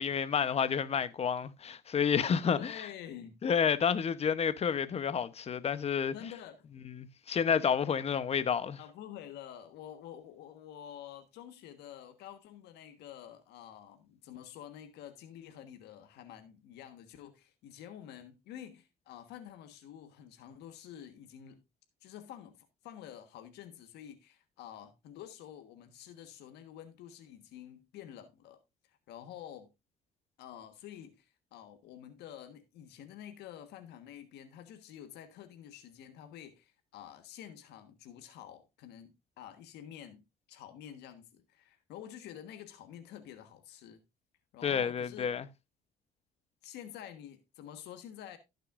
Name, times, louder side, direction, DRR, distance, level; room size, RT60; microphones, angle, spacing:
voice 1, 0.0-2.9 3.4-6.1 6.8-8.8 44.6-45.4, left 7 dB, 35° left, 0.9 m, -30 dB
voice 2, 2.5-3.4 6.1-6.7 8.8-21.6 22.0-22.5 22.8-28.6 28.9-29.7 30.4-39.1 39.4-40.2 40.5-44.0 44.5-45.3 46.6-48.4, left 10 dB, 80° left, 1.4 m, -49 dB
16.5 x 6.7 x 2.5 m
cardioid pair, 110°, 17 cm